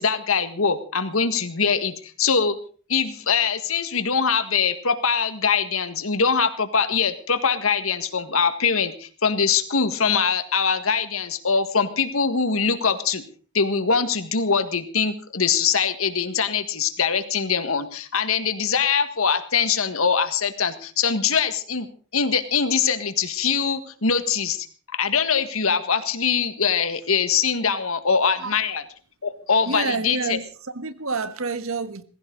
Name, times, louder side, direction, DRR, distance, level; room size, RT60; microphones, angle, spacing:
voice 1, 0.0-2.6 2.9-13.2 13.5-21.9 22.1-24.7 24.9-28.8 29.2-30.4, left 6 dB, 80° left, 11 dB, 1.8 m, -23 dB
voice 2, 29.6-32.0, right 4 dB, 80° right, 12 dB, 1.5 m, -28 dB
20.0 x 16.5 x 4.0 m, 0.40 s
head